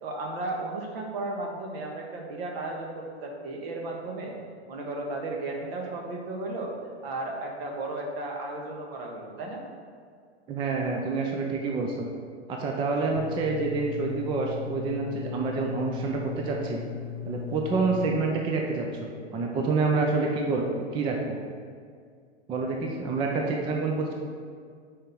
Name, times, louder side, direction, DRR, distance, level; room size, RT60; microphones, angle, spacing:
voice 1, 0.0-4.3 4.7-6.7 7.0-9.6 23.3-23.9, right 2 dB, 60° right, 0 dB, 1.5 m, -34 dB
voice 2, 10.5-12.1 12.5-16.8 17.2-21.4 22.5-24.1, right 4 dB, 15° right, 1 dB, 0.4 m, -28 dB
sound 1, 13.2-18.2, left 11 dB, 55° left, 0.7 m, -37 dB
6.4 x 4.5 x 5.3 m, 2.1 s
hypercardioid pair, 130°, 34 cm